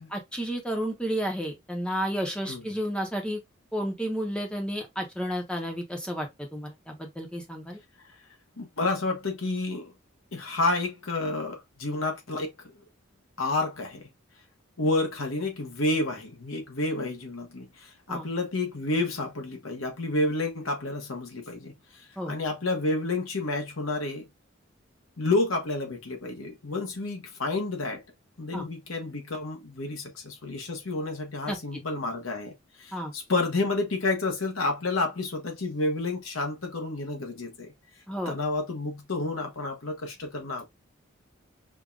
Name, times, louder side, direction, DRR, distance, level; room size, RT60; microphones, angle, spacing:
voice 1, 0.0-3.4 3.7-7.8 18.1-18.3 22.2-22.3 28.5-28.6 31.5-31.8 32.9-33.1 38.1-38.3, equal, 5° left, 0.9 m, -32 dB
voice 2, 8.6-9.9 10.3-12.7 13.4-14.1 14.8-21.7 22.0-24.2 25.2-28.0 28.4-32.5 32.8-37.7 38.3-40.7, left 2 dB, 90° left, 1.2 m, -30 dB
5.1 x 2.6 x 2.4 m
head